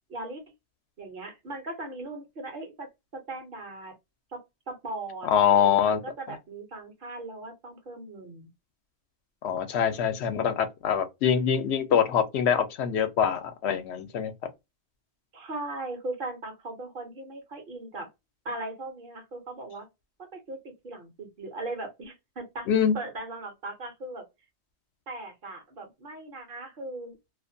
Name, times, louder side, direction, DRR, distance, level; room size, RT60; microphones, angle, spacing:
voice 1, 0.1-0.4 1.0-3.9 4.3-4.4 4.7-8.5 15.3-18.1 18.4-19.9 20.3-22.7 22.9-24.2 25.1-27.2, right 2 dB, 55° right, 0.8 m, -38 dB
voice 2, 5.2-6.0 9.4-14.3 22.7-23.0, left 8 dB, 75° left, 0.8 m, -24 dB
2.4 x 2.1 x 2.5 m
omnidirectional pair, 1.2 m